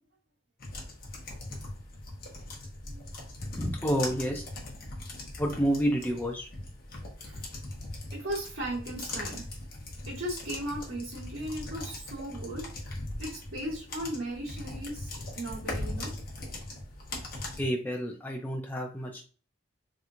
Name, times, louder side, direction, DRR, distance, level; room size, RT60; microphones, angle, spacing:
sound 1, 0.6-17.6, left 2 dB, 45° left, 0.8 m, -40 dB
voice 1, 3.6-4.4 5.4-6.5 17.6-19.2, equal, 10° left, 0 dB, 0.4 m, -29 dB
voice 2, 8.1-9.4 10.1-12.7 13.2-16.1, right 1 dB, 80° right, -7 dB, 1.2 m, -37 dB
3.2 x 3.0 x 2.4 m, 0.37 s
head